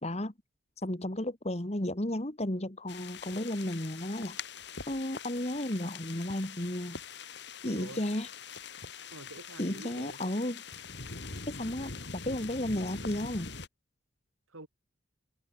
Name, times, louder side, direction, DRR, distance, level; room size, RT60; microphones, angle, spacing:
voice 1, 0.0-0.3 0.8-4.4 4.9-7.0 7.6-8.3 9.6-10.6 11.5-13.5, left 1 dB, 30° left, 1.7 m, -33 dB
sound 1, 2.9-13.7, left 5 dB, 55° left, 3.0 m, -44 dB
voice 2, 7.6-8.0 9.1-10.2 14.5-14.7, right 2 dB, 85° right, 3.8 m, -46 dB
head